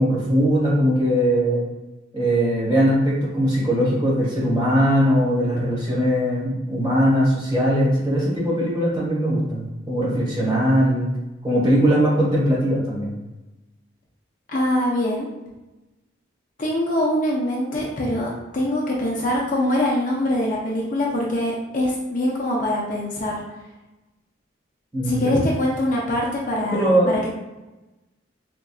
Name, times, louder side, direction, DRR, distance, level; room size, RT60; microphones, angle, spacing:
voice 1, 0.0-1.6 2.1-11.1 11.4-13.1 24.9-25.3 26.7-27.1, equal, 20° right, -7 dB, 1.4 m, -20 dB
voice 2, 14.5-15.3 16.6-23.4 25.0-26.9, left 1 dB, 45° left, -3 dB, 0.6 m, -23 dB
4.3 x 2.6 x 2.3 m, 1.1 s
head